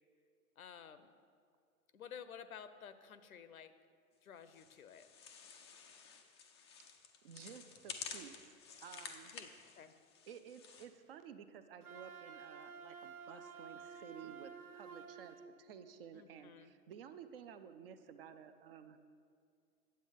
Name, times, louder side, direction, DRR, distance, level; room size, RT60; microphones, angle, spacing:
voice 1, 0.6-1.1 1.9-3.7 4.2-5.1 9.3-9.5 9.8-9.9 16.1-16.7, left 8 dB, 70° left, 12 dB, 0.7 m, -53 dB
sound 1, 4.5-10.9, left 6 dB, 20° left, 0.3 m, -52 dB
voice 2, 7.2-8.3 8.8-9.3 10.3-19.1, right 8 dB, 40° right, 10 dB, 0.6 m, -53 dB
Wind instrument woodwind instrument, 11.8-15.5, right 6 dB, 80° right, 0.9 m, -52 dB
8.9 x 7.6 x 5.3 m, 2.2 s
figure-of-eight pair, 110°, 44 cm